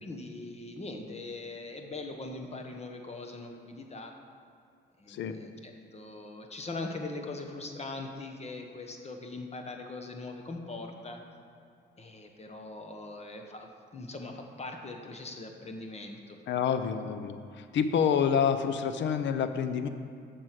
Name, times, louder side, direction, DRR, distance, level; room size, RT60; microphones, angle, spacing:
voice 1, 0.0-4.1 5.0-11.2 12.0-16.4, left 2 dB, 30° left, 4 dB, 1.2 m, -41 dB
voice 2, 16.5-19.9, left 7 dB, 65° left, 9 dB, 0.7 m, -28 dB
7.6 x 6.6 x 6.0 m, 2.5 s
cardioid pair, 90°, 20 cm